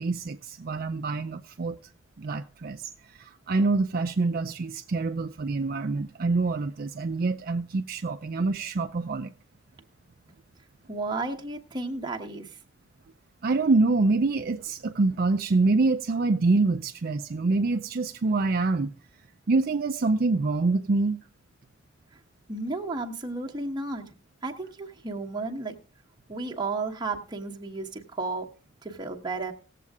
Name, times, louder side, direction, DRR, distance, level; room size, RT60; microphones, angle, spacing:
voice 1, 0.0-1.8 2.2-9.3 13.4-18.9 19.5-21.2, right 3 dB, 50° right, 0.5 m, -26 dB
voice 2, 10.9-12.5 22.5-24.1 24.4-25.7 26.3-28.4 28.8-29.5, right 3 dB, 20° right, 1.2 m, -33 dB
18.0 x 7.5 x 3.6 m
head